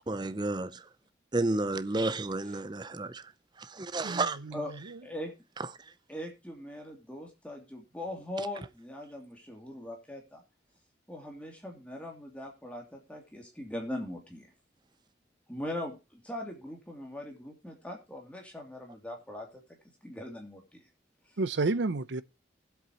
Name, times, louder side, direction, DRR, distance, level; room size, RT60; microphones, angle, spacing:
voice 1, 0.1-0.9 1.3-3.2 3.6-4.4, right 2 dB, 25° right, 0.6 m, -31 dB
voice 2, 4.0-5.0 21.4-22.2, right 3 dB, 75° right, 0.7 m, -31 dB
voice 3, 5.0-5.3 6.1-10.4 11.1-14.5 15.5-19.6 20.0-20.6, left 1 dB, 5° left, 2.7 m, -40 dB
19.5 x 8.1 x 2.9 m
head